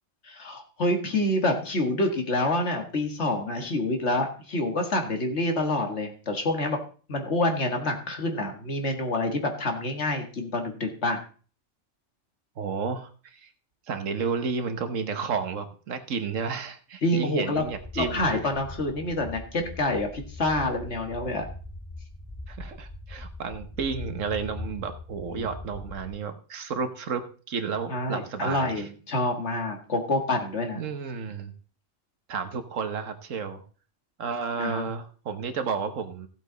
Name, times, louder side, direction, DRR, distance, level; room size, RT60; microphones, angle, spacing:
voice 1, 0.3-6.8 7.1-11.2 17.0-17.6 18.0-21.5 25.3-25.5 27.9-30.8 34.6-34.8, left 2 dB, 60° left, 4 dB, 2.1 m, -27 dB
voice 2, 12.6-13.5 13.9-18.3 22.5-28.9 30.8-31.5 32.3-33.6 34.2-36.3, right 5 dB, 80° right, 8 dB, 1.5 m, -32 dB
sound 1, 17.5-26.1, left 2 dB, 30° left, 5.3 m, -41 dB
15.0 x 8.0 x 3.9 m, 0.40 s
omnidirectional pair, 1.3 m